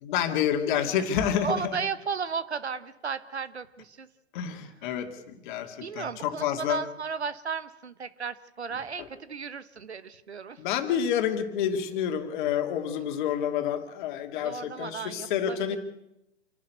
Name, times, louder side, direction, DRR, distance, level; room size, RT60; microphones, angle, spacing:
voice 1, 0.0-1.8 4.3-6.8 8.7-9.1 10.6-15.8, left 9 dB, 45° left, 6 dB, 2.5 m, -29 dB
voice 2, 1.4-4.1 5.8-10.6 14.4-15.8, right 5 dB, 80° right, 14 dB, 1.2 m, -34 dB
28.0 x 11.5 x 8.1 m, 0.88 s
figure-of-eight pair, 105°, 33 cm